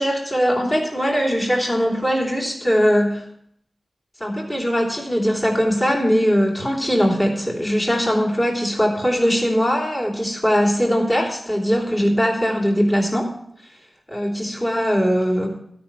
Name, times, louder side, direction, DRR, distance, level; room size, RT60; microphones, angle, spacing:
voice 1, 0.0-3.2 4.2-13.3 14.1-15.6, equal, 25° left, 0 dB, 3.0 m, -20 dB
12.5 x 6.0 x 8.9 m, 0.69 s
wide cardioid pair, 95°, 0 cm